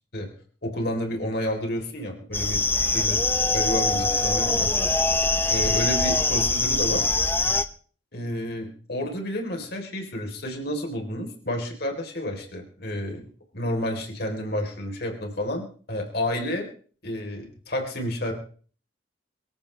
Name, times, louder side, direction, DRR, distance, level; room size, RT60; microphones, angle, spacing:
voice 1, 0.6-3.2 3.5-5.0 5.5-7.0 8.1-13.3 13.5-16.7 17.0-18.3, left 1 dB, 55° left, 2 dB, 3.7 m, -30 dB
sound 1, 2.3-7.7, left 3 dB, 10° left, 0.8 m, -23 dB
24.5 x 14.0 x 3.3 m, 0.44 s
head